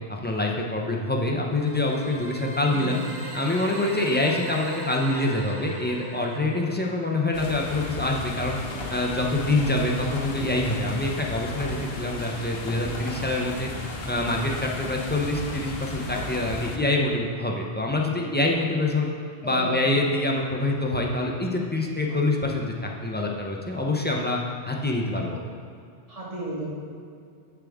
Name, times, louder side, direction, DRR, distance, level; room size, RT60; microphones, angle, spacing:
voice 1, 0.1-3.0 3.3-8.6 8.9-13.7 14.1-19.1 19.4-24.4 24.6-25.4, left 2 dB, 15° left, -1 dB, 0.4 m, -25 dB
sound 1, 1.5-7.5, right 2 dB, 55° right, 0.9 m, -40 dB
voice 2, 2.7-3.0 19.4-19.9 26.1-26.7, right 2 dB, 30° right, -7 dB, 1.9 m, -34 dB
sound 2, 7.3-16.8, left 2 dB, 60° left, 0.9 m, -35 dB
7.3 x 6.9 x 3.6 m, 2.3 s
omnidirectional pair, 1.2 m